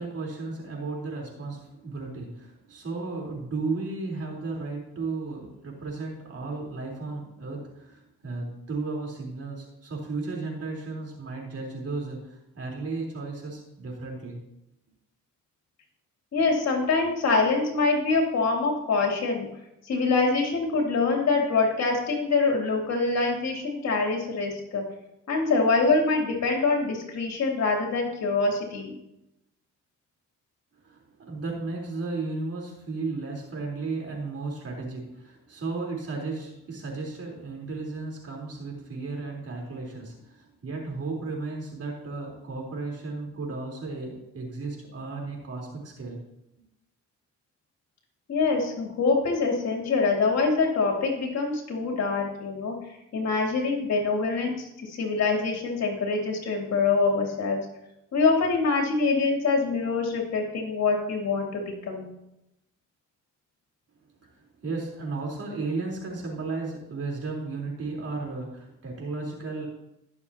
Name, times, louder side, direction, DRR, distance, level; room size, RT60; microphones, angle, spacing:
voice 1, 0.0-14.4 30.8-46.2 64.2-69.7, right 3 dB, 50° right, -1 dB, 3.9 m, -34 dB
voice 2, 16.3-19.5 19.9-24.8 25.3-28.9 48.3-52.7 53.1-57.6 58.1-62.1, left 4 dB, 60° left, 0 dB, 2.9 m, -25 dB
20.0 x 6.9 x 2.9 m, 0.86 s
cardioid pair, 90°, 30 cm